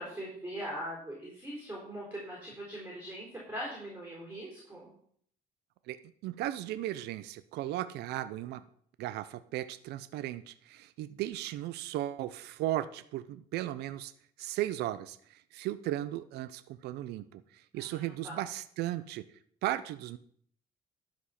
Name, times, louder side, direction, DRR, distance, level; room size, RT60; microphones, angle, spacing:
voice 1, 0.0-4.9 17.7-18.4, equal, 10° right, -4 dB, 3.8 m, -41 dB
voice 2, 6.2-8.6 9.0-14.1 14.4-19.2 19.6-20.2, right 14 dB, 75° right, 13 dB, 0.5 m, -36 dB
11.5 x 5.1 x 5.7 m, 0.62 s
cardioid pair, 110°, 17 cm